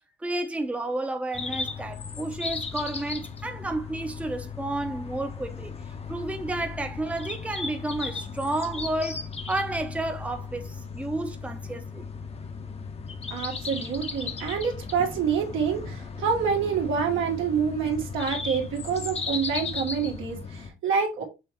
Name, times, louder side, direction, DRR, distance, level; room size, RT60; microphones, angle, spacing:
voice 1, 0.2-5.8 6.1-12.1, right 2 dB, 5° right, 0.6 m, -31 dB
sound 1, 1.3-20.7, left 5 dB, 30° left, 0.7 m, -36 dB
voice 2, 13.3-21.2, right 6 dB, 85° right, 1.5 m, -27 dB
5.6 x 3.0 x 3.0 m
cardioid pair, 90°, 20 cm